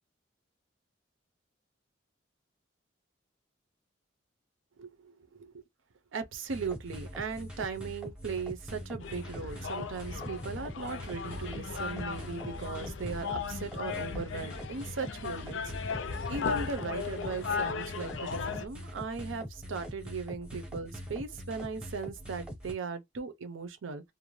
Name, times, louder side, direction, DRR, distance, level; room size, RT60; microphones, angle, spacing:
voice 1, 4.8-5.6 6.1-24.1, right 4 dB, 80° right, 0.6 m, -38 dB
sound 1, 6.5-22.7, equal, 5° right, 0.7 m, -43 dB
sound 2, 9.0-18.7, left 6 dB, 70° left, 0.5 m, -37 dB
2.5 x 2.1 x 3.1 m
head